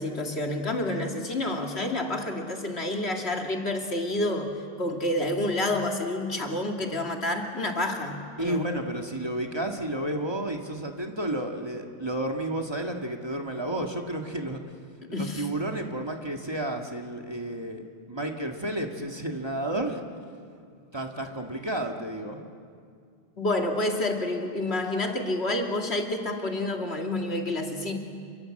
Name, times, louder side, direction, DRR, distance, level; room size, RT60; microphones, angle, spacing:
voice 1, 0.0-8.6 15.1-15.5 23.4-28.0, left 1 dB, 75° left, 2 dB, 2.8 m, -29 dB
voice 2, 8.4-14.6 15.2-20.0 20.9-22.4, right 1 dB, 25° right, 2 dB, 1.9 m, -31 dB
28.5 x 23.5 x 7.7 m, 2.3 s
omnidirectional pair, 1.1 m